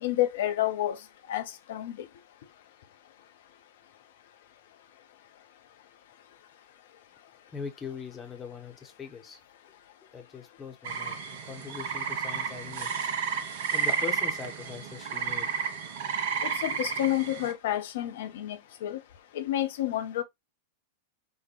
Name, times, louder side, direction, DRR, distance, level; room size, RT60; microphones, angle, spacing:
voice 1, 0.0-1.0 1.3-2.0 16.4-19.0 19.3-20.2, left 13 dB, 55° left, 0.6 m, -29 dB
voice 2, 7.5-9.4 10.1-11.2 11.4-13.1 13.7-15.5, left 6 dB, 20° left, 0.8 m, -41 dB
sound 1, 10.9-17.5, right 6 dB, 55° right, 0.7 m, -32 dB
4.3 x 2.1 x 3.2 m
figure-of-eight pair, 90°, 0 cm